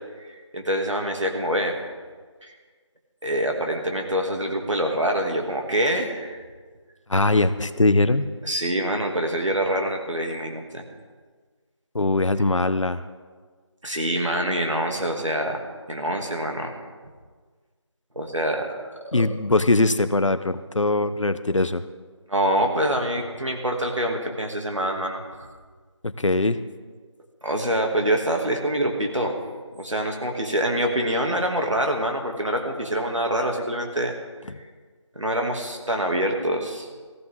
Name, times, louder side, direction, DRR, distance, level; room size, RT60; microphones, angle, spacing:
voice 1, 0.3-1.8 2.4-2.5 3.2-6.4 8.4-10.8 13.8-15.6 15.9-16.7 18.2-19.3 22.3-25.5 27.4-29.4 29.7-34.1 35.2-36.9, right 1 dB, 80° right, 2 dB, 2.5 m, -25 dB
voice 2, 7.1-8.3 11.9-13.0 19.1-21.8 26.0-26.6, left 2 dB, 75° left, 12 dB, 0.8 m, -21 dB
15.0 x 15.0 x 3.7 m, 1.5 s
figure-of-eight pair, 175°, 16 cm